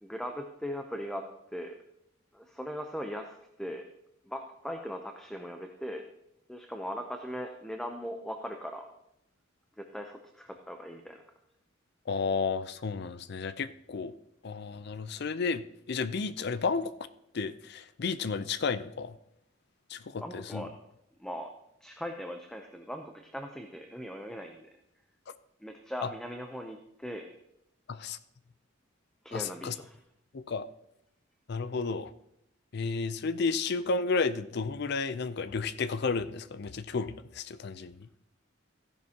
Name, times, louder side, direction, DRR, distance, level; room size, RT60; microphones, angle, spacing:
voice 1, 0.0-1.2 1.5-1.8 2.3-3.9 4.3-6.0 6.5-8.9 9.8-11.2 20.2-20.7 21.2-21.5 21.8-24.7 25.6-27.3 29.2-30.0, equal, 5° left, 4 dB, 0.6 m, -39 dB
voice 2, 12.1-14.1 14.4-15.6 15.9-16.9 17.3-19.2 19.9-20.7 26.0-26.1 27.9-28.2 29.3-29.7 30.3-30.7 31.5-32.1 32.7-38.1, left 4 dB, 55° left, 14 dB, 0.5 m, -32 dB
14.5 x 10.5 x 2.8 m, 0.80 s
head